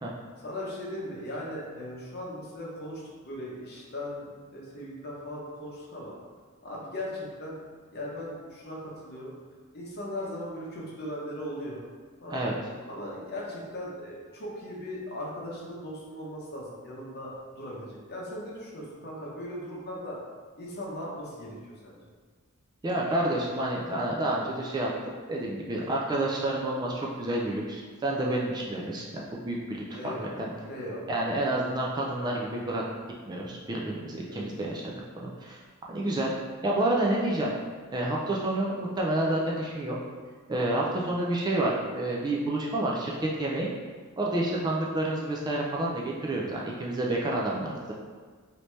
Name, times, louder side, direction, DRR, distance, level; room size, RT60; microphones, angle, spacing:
voice 1, 0.4-6.1 6.6-7.6 7.9-9.3 9.7-11.8 12.2-12.4 12.9-20.2 20.6-22.0 29.9-31.4 34.3-34.4, left 1 dB, 50° left, -4 dB, 0.8 m, -38 dB
voice 2, 22.8-24.9 25.3-29.8 30.4-30.5 31.1-32.8 33.3-35.6 35.9-36.3 36.6-37.5 37.9-40.0 40.5-43.7 44.2-47.9, right 1 dB, 20° right, -3 dB, 0.3 m, -29 dB
3.2 x 2.7 x 3.1 m, 1.5 s
head